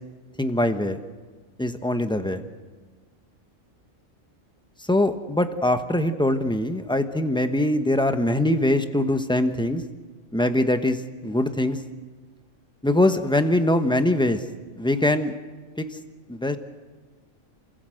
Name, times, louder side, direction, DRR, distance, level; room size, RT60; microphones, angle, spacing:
voice 1, 0.4-1.0 1.6-2.4 4.8-9.8 10.3-11.8 12.8-14.4 14.8-15.3 15.8-15.9 16.3-16.6, left 1 dB, 5° left, 8 dB, 1.0 m, -22 dB
28.5 x 16.5 x 7.8 m, 1.4 s
omnidirectional pair, 1.3 m